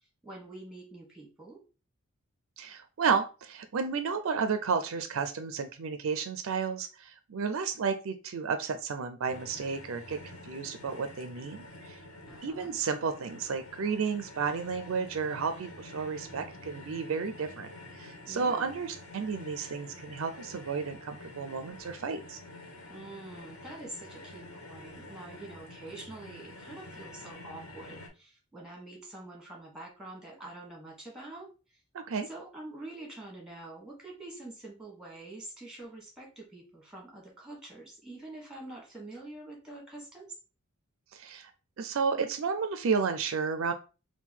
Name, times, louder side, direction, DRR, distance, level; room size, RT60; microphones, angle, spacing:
voice 1, 0.2-1.6 12.3-12.7 18.3-18.7 22.9-31.8 32.3-40.3, right 2 dB, 5° right, -1 dB, 1.2 m, -46 dB
voice 2, 2.6-12.0 12.4-17.7 18.0-22.4 31.9-32.3 41.1-41.5 41.8-43.7, right 5 dB, 65° right, 9 dB, 0.4 m, -32 dB
sound 1, 9.3-28.1, left 2 dB, 70° left, 1.3 m, -48 dB
3.7 x 2.2 x 4.4 m, 0.32 s
head